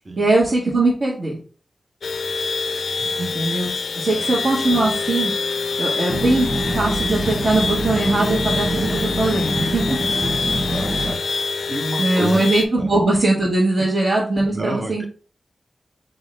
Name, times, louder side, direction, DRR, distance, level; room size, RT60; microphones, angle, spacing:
voice 1, 0.2-1.4 3.2-5.3 5.8-10.0 12.0-15.1, right 2 dB, 65° right, -6 dB, 1.3 m, -20 dB
sound 1, 2.0-12.6, left 4 dB, 85° left, 0.4 m, -25 dB
voice 2, 3.0-3.5 4.2-4.3 10.2-11.2 11.7-12.4 12.8-12.9 14.5-15.1, right 2 dB, 35° right, 5 dB, 0.8 m, -30 dB
sound 2, 6.1-11.1, right 1 dB, 5° right, 1.1 m, -25 dB
sound 3, 7.3-10.1, right 1 dB, 85° right, 1.2 m, -40 dB
4.4 x 3.6 x 3.3 m, 0.38 s
wide cardioid pair, 110°, 0 cm